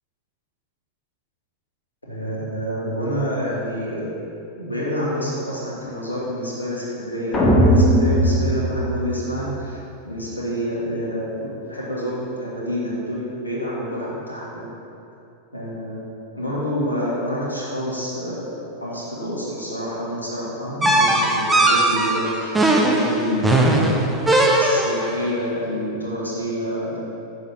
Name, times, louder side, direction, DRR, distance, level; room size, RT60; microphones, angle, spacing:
voice 1, 2.1-4.2 4.5-14.7 15.5-16.0 16.3-18.5 18.8-23.8 24.6-27.0, equal, 80° left, -6 dB, 1.7 m, -28 dB
sound 1, 7.3-9.6, equal, 20° left, 1.2 m, -18 dB
sound 2, 20.8-25.1, right 2 dB, 10° right, 0.7 m, -18 dB
6.5 x 5.3 x 4.6 m, 2.7 s
figure-of-eight pair, 90°, 0 cm